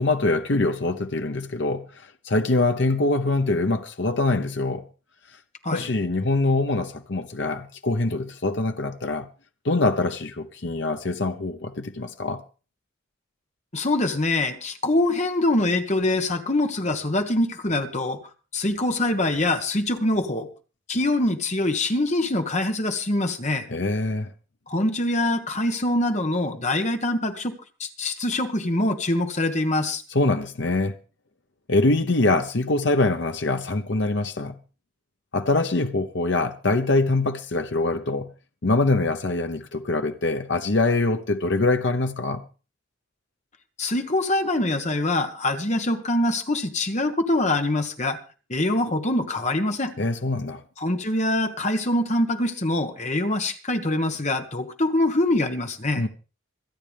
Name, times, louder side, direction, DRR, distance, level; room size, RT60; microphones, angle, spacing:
voice 1, 0.0-1.9 2.2-4.8 5.7-9.3 9.6-12.4 23.7-24.3 30.1-31.0 31.7-34.6 35.3-38.3 38.6-42.4 50.0-50.6 56.0-56.1, left 2 dB, 60° left, 0.9 m, -24 dB
voice 2, 13.7-18.2 18.5-20.5 20.9-23.6 24.7-27.5 27.8-30.0 43.8-48.2 48.5-49.9 50.8-56.0, left 1 dB, 35° left, 1.4 m, -24 dB
26.5 x 8.9 x 3.5 m
head